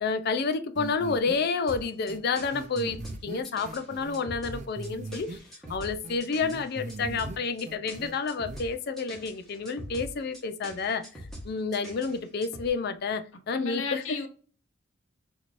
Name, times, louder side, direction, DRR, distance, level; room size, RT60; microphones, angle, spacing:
voice 1, 0.0-5.4 5.7-11.1 11.4-14.3, left 4 dB, 55° left, 0.4 m, -30 dB
sound 1, 0.8-1.4 1.7-1.8 2.1-2.2 2.5-4.2 4.5-5.4 5.7-7.4 7.7-8.1 8.5-8.6, right 3 dB, 40° right, 0.4 m, -40 dB
sound 2, 1.7-12.7, equal, ahead, 1.2 m, -43 dB
voice 2, 13.5-14.3, left 4 dB, 75° left, 0.8 m, -33 dB
4.5 x 2.7 x 2.5 m
head